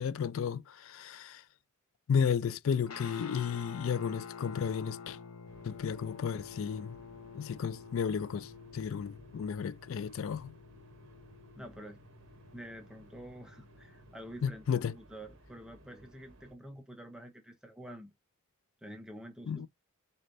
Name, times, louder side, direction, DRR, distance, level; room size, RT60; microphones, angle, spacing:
voice 1, 0.0-1.4 2.1-5.2 5.6-7.0 7.3-10.6 14.4-15.0 19.5-19.7, left 7 dB, 65° left, 0.3 m, -33 dB
Guitar, 2.9-14.3, left 5 dB, 80° left, 0.7 m, -49 dB
sound 1, 5.5-16.5, right 2 dB, 60° right, 0.9 m, -59 dB
voice 2, 11.5-12.0 12.5-18.1 18.8-19.7, equal, 5° right, 0.6 m, -48 dB
4.1 x 3.2 x 2.5 m
head